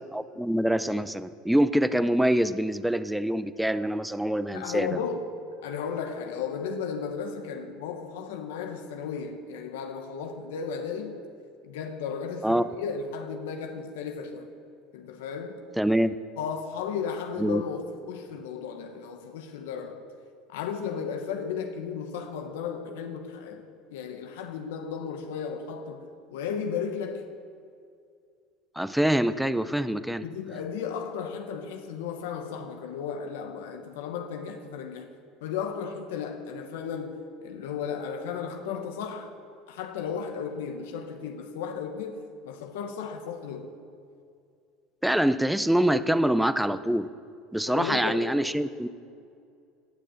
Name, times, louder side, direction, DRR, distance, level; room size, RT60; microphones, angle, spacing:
voice 1, 0.1-5.0 12.4-12.6 15.8-16.2 17.4-17.6 28.8-30.3 45.0-47.1 47.5-48.9, right 1 dB, 5° right, 0.5 m, -25 dB
voice 2, 4.5-11.2 11.6-14.5 14.9-15.7 16.4-20.0 20.5-27.3 30.2-35.1 35.4-39.3 39.7-43.7 47.7-48.3, left 6 dB, 85° left, 1.1 m, -35 dB
17.0 x 6.7 x 7.8 m
supercardioid pair, 110°, 0 cm